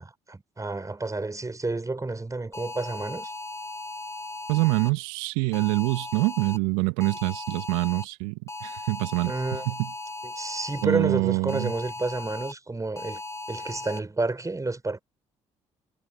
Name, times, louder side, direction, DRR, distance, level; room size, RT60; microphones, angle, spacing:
voice 1, 0.0-3.3 9.3-9.6 10.4-13.2 13.5-15.0, right 3 dB, 20° right, 5.9 m, -30 dB
sound 1, 2.5-4.9 5.5-6.6 7.0-8.1 8.5-10.8 11.5-12.5 13.0-14.0, left 2 dB, 20° left, 2.1 m, -37 dB
voice 2, 4.5-9.9 10.8-11.7, right 27 dB, 75° right, 2.0 m, -25 dB
hypercardioid pair, 50°, 16 cm